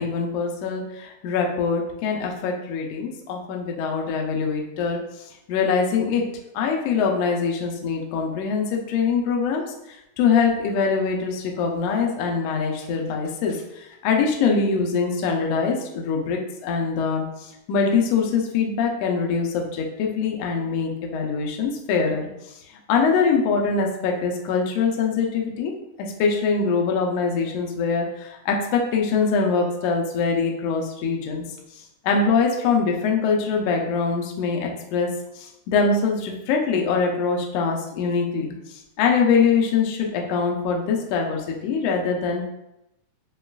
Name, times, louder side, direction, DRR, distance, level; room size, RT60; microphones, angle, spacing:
voice 1, 0.0-6.2 6.5-9.6 10.2-22.3 22.9-25.7 26.2-31.4 32.0-35.1 35.3-42.5, left 5 dB, 85° left, 0 dB, 1.4 m, -23 dB
6.6 x 2.4 x 2.3 m, 0.84 s
omnidirectional pair, 3.6 m